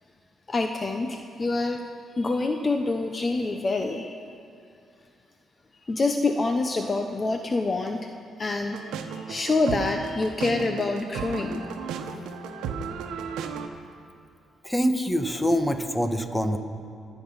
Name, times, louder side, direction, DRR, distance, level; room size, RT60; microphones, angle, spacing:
voice 1, 0.5-1.9 2.2-4.2 5.9-8.1 8.4-11.6, left 3 dB, 30° left, 5 dB, 0.9 m, -26 dB
sound 1, 8.7-13.7, right 6 dB, 90° right, 1.1 m, -34 dB
voice 2, 14.6-16.6, equal, 10° left, 7 dB, 1.4 m, -25 dB
26.0 x 9.4 x 5.6 m, 2.6 s
cardioid pair, 90°, 0 cm